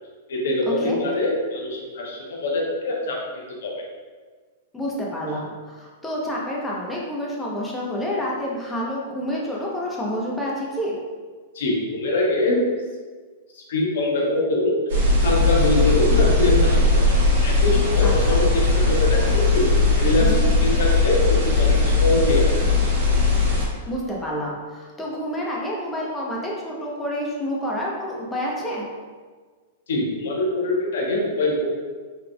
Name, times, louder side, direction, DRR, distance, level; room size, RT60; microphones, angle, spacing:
voice 1, 0.3-3.2 3.6-3.7 11.5-12.6 13.5-14.8 15.2-16.8 17.4-19.6 20.0-20.3 20.6-22.5 29.9-31.7, left 1 dB, 75° left, -2 dB, 0.9 m, -23 dB
voice 2, 4.7-11.0 18.0-18.4 20.2-20.4 23.9-28.9, equal, 10° left, -4 dB, 0.8 m, -28 dB
sound 1, 14.9-23.7, left 3 dB, 70° right, 1.3 m, -19 dB
3.9 x 3.3 x 2.3 m, 1.5 s
hypercardioid pair, 125°, 0 cm